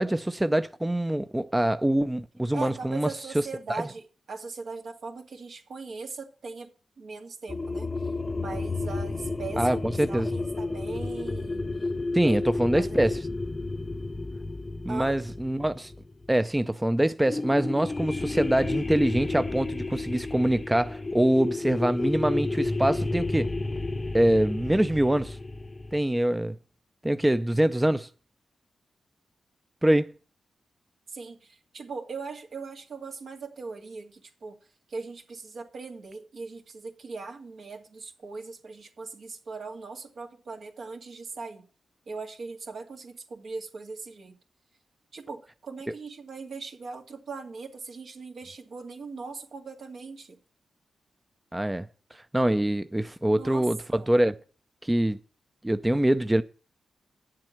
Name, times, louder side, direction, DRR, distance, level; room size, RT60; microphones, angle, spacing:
voice 1, 0.0-3.4 9.6-10.3 12.1-13.2 14.8-15.9 16.3-23.5 24.1-25.4 25.9-26.6 27.0-28.1 29.8-30.1 51.5-54.3 54.8-55.2 55.6-56.4, right 1 dB, 10° right, 0.5 m, -24 dB
voice 2, 2.5-6.7 7.0-8.1 8.3-9.8 10.1-11.7 12.2-12.4 12.7-13.0 14.9-15.1 31.1-34.6 34.9-41.6 42.1-44.3 45.1-50.4 53.2-54.1, right 4 dB, 70° right, 2.2 m, -40 dB
sound 1, 7.5-16.6 17.3-26.0, left 2 dB, 30° left, 0.6 m, -31 dB
8.8 x 7.6 x 5.8 m
cardioid pair, 65°, 0 cm